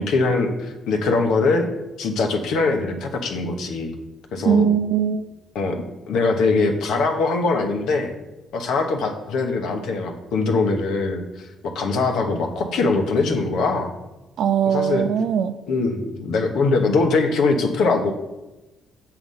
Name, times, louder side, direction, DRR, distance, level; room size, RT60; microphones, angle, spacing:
voice 1, 0.0-1.7 2.0-3.9 4.3-4.7 5.5-8.1 8.5-13.9 14.7-15.0 15.7-18.1, left 3 dB, 80° left, 4 dB, 1.2 m, -22 dB
voice 2, 4.4-5.3 14.4-15.6, right 7 dB, 75° right, 11 dB, 0.5 m, -20 dB
7.9 x 4.8 x 5.5 m, 1.0 s
cardioid pair, 90°, 0 cm